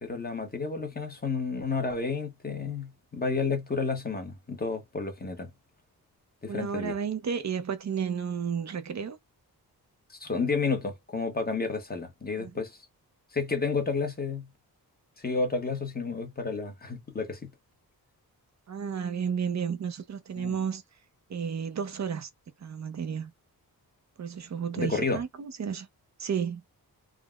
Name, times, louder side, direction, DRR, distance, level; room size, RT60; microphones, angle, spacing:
voice 1, 0.0-5.5 6.4-7.0 10.1-12.8 13.3-14.5 15.2-17.5 20.4-20.5 24.8-25.2, left 4 dB, 25° left, 0.9 m, -31 dB
voice 2, 6.5-9.2 12.4-12.5 18.7-20.8 21.3-22.3 22.6-23.3 24.2-25.9 26.2-26.6, right 7 dB, 45° right, 0.5 m, -32 dB
3.5 x 2.0 x 2.2 m
wide cardioid pair, 150°, 38 cm